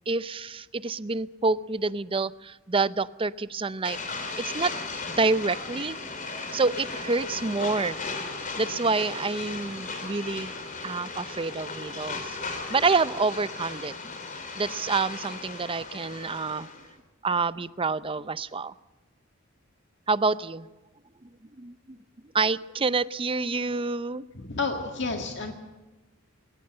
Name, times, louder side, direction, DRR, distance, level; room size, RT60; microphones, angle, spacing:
voice 1, 0.1-4.0 4.4-4.7 5.2-6.0 6.5-8.0 8.5-10.5 10.8-12.4 12.7-13.9 14.6-16.7 17.2-18.7 20.1-20.7 21.6-22.0 22.3-24.2, right 4 dB, 25° right, 16 dB, 0.6 m, -27 dB
sound 1, 3.8-16.9, left 3 dB, 40° left, 3.6 m, -36 dB
voice 2, 24.3-25.5, left 3 dB, 60° left, 4 dB, 1.9 m, -30 dB
21.0 x 19.0 x 7.8 m, 1.1 s
head